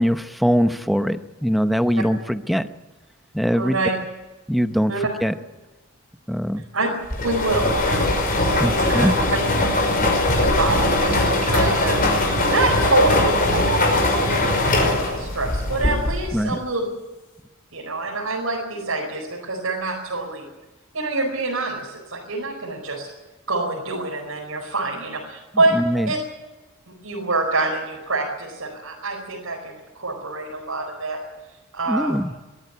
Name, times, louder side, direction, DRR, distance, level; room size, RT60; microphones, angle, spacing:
voice 1, 0.0-2.7 3.3-3.8 4.5-4.9 5.2-5.3 6.3-6.6 8.6-9.1 16.3-16.6 25.7-26.1 31.9-32.3, equal, ahead, 10 dB, 0.8 m, -21 dB
voice 2, 3.5-3.9 4.9-5.1 6.7-6.9 7.2-8.1 8.4-9.1 10.4-16.8 17.7-20.5 20.9-23.1 23.5-25.8 26.1-26.2 27.0-31.2 31.7-32.1, right 2 dB, 90° right, -3 dB, 4.8 m, -26 dB
sound 1, 7.1-16.4, left 2 dB, 45° left, 5.5 m, -20 dB
23.0 x 14.0 x 9.7 m, 1.1 s
head